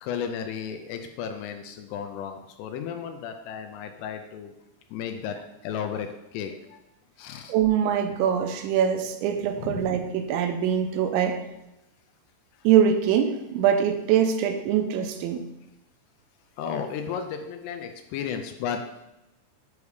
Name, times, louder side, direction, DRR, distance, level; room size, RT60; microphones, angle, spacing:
voice 1, 0.0-4.5 4.9-5.4 5.6-6.8 7.2-7.5 9.6-9.9 16.6-19.1, left 7 dB, 80° left, 6 dB, 2.5 m, -34 dB
voice 2, 7.5-11.4 12.6-15.4, right 8 dB, 85° right, 6 dB, 2.9 m, -23 dB
8.2 x 3.4 x 4.8 m, 0.91 s
omnidirectional pair, 5.3 m